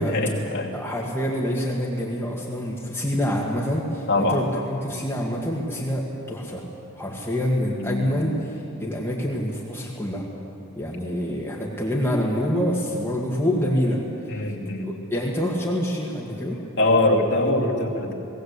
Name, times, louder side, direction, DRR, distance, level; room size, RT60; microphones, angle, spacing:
voice 1, 0.0-0.8 4.1-4.4 7.8-8.1 14.3-14.9 16.8-18.1, left 2 dB, 55° left, -1 dB, 2.5 m, -23 dB
voice 2, 0.7-6.6 7.0-10.3 10.8-14.0 14.3-14.4 14.8-16.6, equal, 10° left, -4 dB, 1.8 m, -26 dB
19.5 x 18.5 x 8.1 m, 2.8 s
head